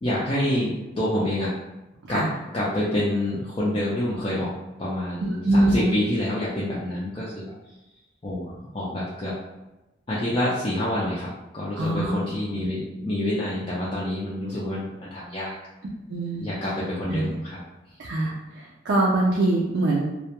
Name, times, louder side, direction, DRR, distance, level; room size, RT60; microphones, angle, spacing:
voice 1, 0.0-1.5 2.1-2.2 2.5-4.5 4.8-7.5 8.2-9.3 10.1-11.3 11.5-15.5 16.4-17.6, left 1 dB, 25° left, -7 dB, 0.3 m, -27 dB
voice 2, 5.3-5.9 11.8-12.1 12.5-12.7 16.1-16.5 17.1-17.4 18.0-20.0, right 2 dB, 70° right, -3 dB, 0.4 m, -23 dB
2.2 x 2.1 x 2.8 m, 1.0 s
head